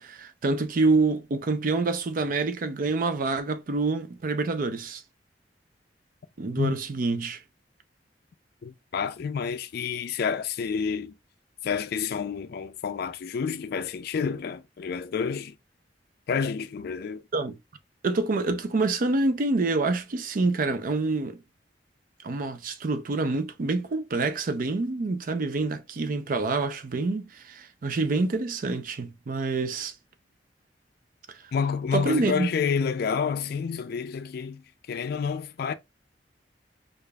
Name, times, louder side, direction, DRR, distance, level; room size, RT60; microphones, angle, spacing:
voice 1, 0.0-5.0 6.4-7.4 17.3-17.6 18.0-21.4 22.2-29.9 31.3-31.4 31.9-32.5, right 3 dB, 50° right, 0.5 m, -27 dB
voice 2, 8.6-11.1 11.6-15.5 16.3-17.2 31.5-34.6 34.9-35.7, left 6 dB, 60° left, 0.4 m, -29 dB
4.9 x 2.4 x 2.3 m
head